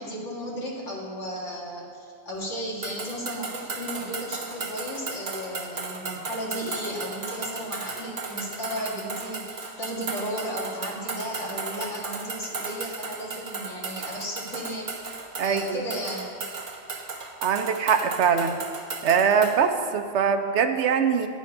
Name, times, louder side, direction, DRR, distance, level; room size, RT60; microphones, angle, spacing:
voice 1, 0.0-14.9 15.4-16.2, equal, 85° left, -3 dB, 2.2 m, -34 dB
sound 1, 2.8-19.6, right 4 dB, 50° right, 0.9 m, -35 dB
voice 2, 15.4-15.8 17.4-18.6 19.0-21.3, right 6 dB, 75° right, 8 dB, 1.0 m, -22 dB
9.4 x 9.0 x 5.3 m, 2.2 s
omnidirectional pair, 1.2 m